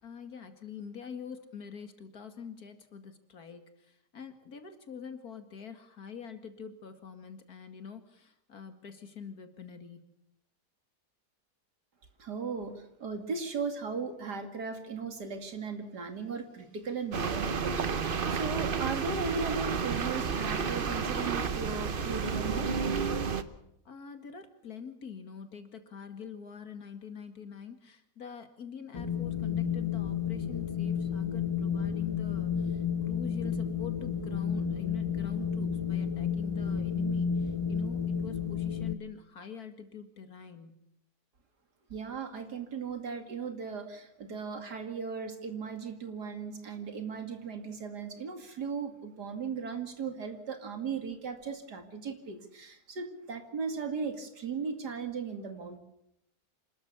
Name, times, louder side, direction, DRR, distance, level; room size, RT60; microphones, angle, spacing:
voice 1, 0.0-10.1 23.8-40.9, left 7 dB, 65° left, 8 dB, 2.5 m, -45 dB
voice 2, 12.2-22.7 41.9-55.8, right 5 dB, 85° right, 7 dB, 3.0 m, -37 dB
sound 1, 17.1-23.4, right 5 dB, 40° right, 1.0 m, -31 dB
Wind, 28.9-38.9, left 7 dB, 30° left, 0.6 m, -31 dB
27.0 x 13.0 x 8.4 m, 0.78 s
omnidirectional pair, 1.7 m